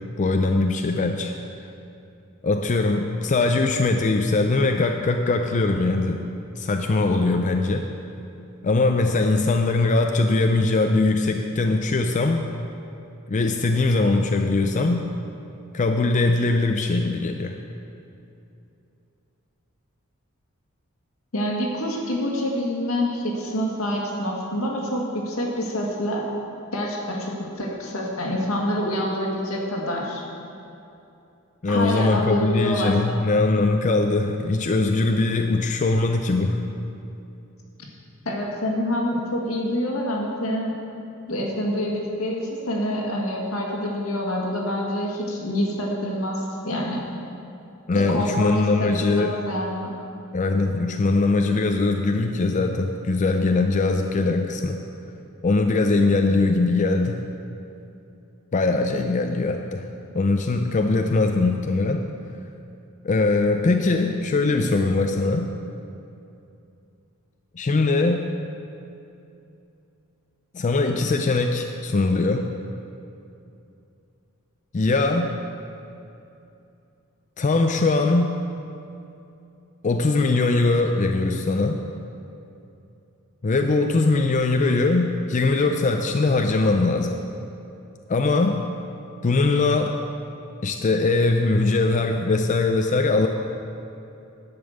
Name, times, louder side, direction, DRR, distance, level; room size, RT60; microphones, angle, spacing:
voice 1, 0.2-1.4 2.4-6.2 6.6-7.9 8.6-12.5 13.3-15.0 15.7-17.6 31.6-36.6 47.9-49.4 50.3-54.8 55.4-57.2 58.5-59.9 60.1-62.1 63.0-65.5 67.5-68.2 70.5-72.5 74.7-75.3 77.4-78.3 79.8-81.8 83.4-87.1 88.1-88.6 89.2-90.0 90.6-93.3, left 3 dB, 35° left, 5 dB, 0.4 m, -21 dB
voice 2, 21.3-26.2 26.7-30.2 31.7-33.3 38.3-40.7 41.3-47.0 48.0-49.9, equal, 80° left, -2 dB, 1.8 m, -26 dB
10.5 x 5.3 x 7.9 m, 2.7 s
head